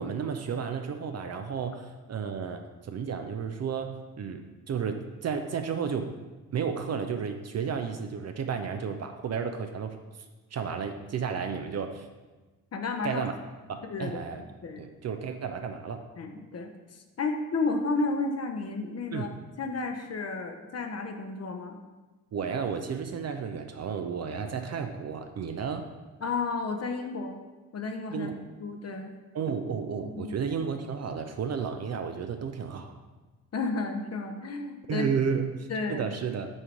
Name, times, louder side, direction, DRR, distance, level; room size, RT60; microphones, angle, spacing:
voice 1, 0.0-6.1 6.5-10.0 10.5-12.1 13.0-13.3 13.7-14.4 14.8-16.0 19.1-19.3 22.3-25.9 28.1-28.3 29.3-33.0 34.9-36.5, right 6 dB, 35° right, 7 dB, 0.5 m, -32 dB
voice 2, 12.7-13.2 13.8-14.2 14.6-14.8 16.2-16.7 17.2-19.3 19.6-21.8 26.2-27.4 27.7-29.1 30.2-30.3 33.5-35.1 35.7-36.1, left 3 dB, 35° left, 4 dB, 0.8 m, -32 dB
6.3 x 3.7 x 4.6 m, 1.2 s
hypercardioid pair, 45°, 44 cm